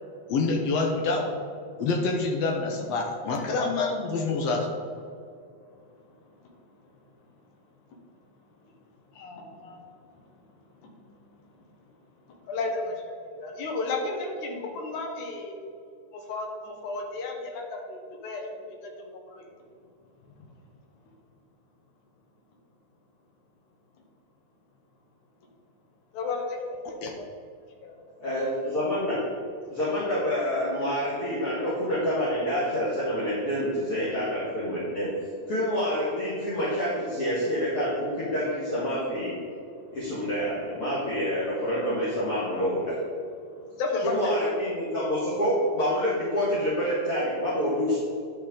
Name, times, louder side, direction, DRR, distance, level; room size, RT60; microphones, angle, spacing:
voice 1, 0.3-1.4 1.8-4.7 27.0-27.1, left 3 dB, 70° left, 2 dB, 1.7 m, -26 dB
voice 2, 9.1-9.9 10.1-10.2 10.8-11.4 12.3-15.6 16.1-19.6 20.3-20.5 26.1-27.2 27.8-28.0 39.9-40.0 43.7-44.6, left 3 dB, 90° left, 2 dB, 2.6 m, -34 dB
voice 3, 28.2-29.2 29.7-35.1 35.5-39.4 39.9-43.0 44.1-48.0, equal, 50° left, -9 dB, 2.4 m, -27 dB
11.0 x 5.4 x 3.8 m, 2.4 s
omnidirectional pair, 3.4 m